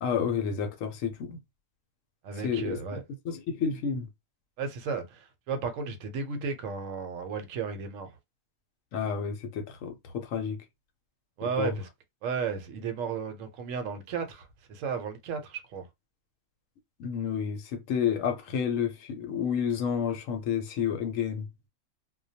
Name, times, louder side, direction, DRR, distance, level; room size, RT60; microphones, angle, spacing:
voice 1, 0.0-1.4 2.4-2.8 3.3-4.1 8.9-10.6 11.6-11.7 17.0-21.5, left 7 dB, 75° left, 0.9 m, -30 dB
voice 2, 2.2-3.0 4.6-8.1 11.4-11.9 12.2-15.8, right 6 dB, 75° right, 0.9 m, -34 dB
2.2 x 2.1 x 2.6 m
omnidirectional pair, 1.4 m